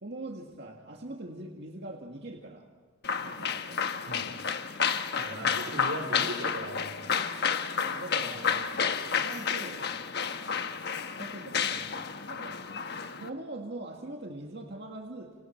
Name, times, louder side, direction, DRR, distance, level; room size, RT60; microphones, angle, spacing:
voice 1, 0.0-2.7 3.2-3.8 5.2-5.8 7.8-10.0 10.4-10.7 11.2-12.8 13.0-15.3, right 2 dB, 60° right, 1 dB, 1.9 m, -43 dB
sound 1, 3.0-13.3, left 6 dB, 55° left, 1.2 m, -31 dB
voice 2, 5.1-7.1 8.3-8.8, right 1 dB, 85° right, 6 dB, 3.8 m, -39 dB
29.5 x 27.5 x 4.5 m, 1.5 s
head